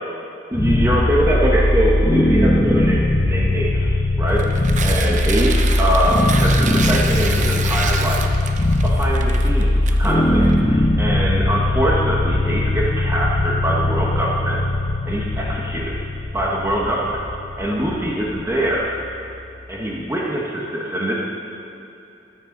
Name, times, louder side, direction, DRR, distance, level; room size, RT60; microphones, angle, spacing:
sound 1, 0.5-19.6, left 1 dB, 25° left, 0.8 m, -20 dB
voice 1, 0.5-8.4 8.8-14.6 15.0-15.9 16.3-17.2 17.6-18.9 19.7-21.1, right 1 dB, 15° right, -4 dB, 1.1 m, -23 dB
Tearing, 4.3-10.5, right 5 dB, 40° right, 0.6 m, -29 dB
14.5 x 9.6 x 3.9 m, 2.8 s
head